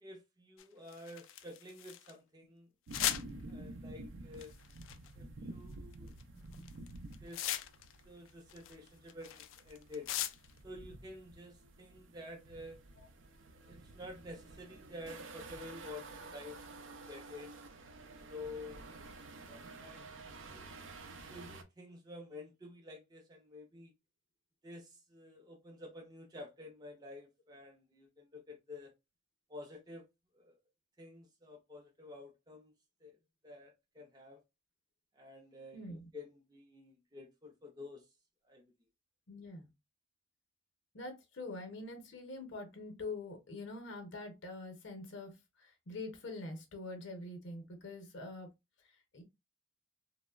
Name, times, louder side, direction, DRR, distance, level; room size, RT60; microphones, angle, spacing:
voice 1, 0.0-2.7 3.5-4.5 5.2-6.1 7.2-7.5 8.0-10.1 10.6-12.8 13.5-17.5 18.3-18.8 19.4-20.1 20.4-20.9 21.2-23.9 24.6-28.9 29.5-30.0 30.3-30.6 31.0-32.7 33.0-33.2 33.4-34.4 35.1-38.1 38.4-38.6, left 2 dB, 20° right, 0.5 m, -50 dB
sound 1, 0.6-2.1 2.9-3.2 4.3-5.1 5.9-6.2 6.5-8.0 8.3-10.6, left 12 dB, 85° left, 0.3 m, -38 dB
sound 2, 2.9-21.6, right 2 dB, 80° right, 0.4 m, -51 dB
voice 2, 6.3-6.7 35.7-36.1 39.3-39.7 40.9-48.5 48.8-49.2, left 2 dB, 65° left, 0.7 m, -45 dB
3.0 x 2.0 x 2.3 m
head